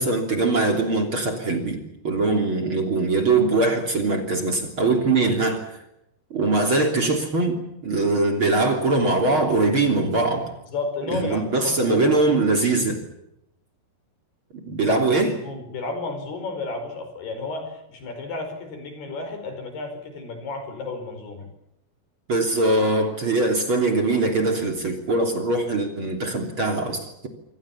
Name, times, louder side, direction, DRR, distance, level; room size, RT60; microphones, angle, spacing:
voice 1, 0.0-5.7 6.3-10.5 11.1-13.0 14.5-15.3 22.3-27.3, right 2 dB, 35° right, 4 dB, 3.6 m, -22 dB
voice 2, 10.7-12.1 14.8-21.5, left 3 dB, 75° left, 7 dB, 7.1 m, -32 dB
28.0 x 24.0 x 7.2 m, 0.82 s
omnidirectional pair, 4.6 m